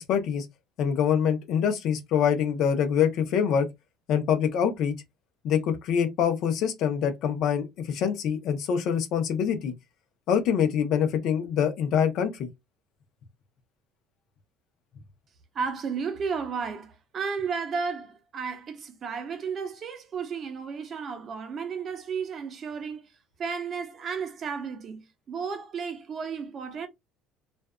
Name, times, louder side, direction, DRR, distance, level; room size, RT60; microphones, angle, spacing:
voice 1, 0.1-0.5 0.8-3.7 4.1-5.0 5.4-9.7 10.3-12.5, left 8 dB, 65° left, 0.7 m, -25 dB
voice 2, 15.5-23.1 23.4-26.9, right 5 dB, 45° right, 0.7 m, -33 dB
2.5 x 2.3 x 2.2 m
supercardioid pair, 90°, 0 cm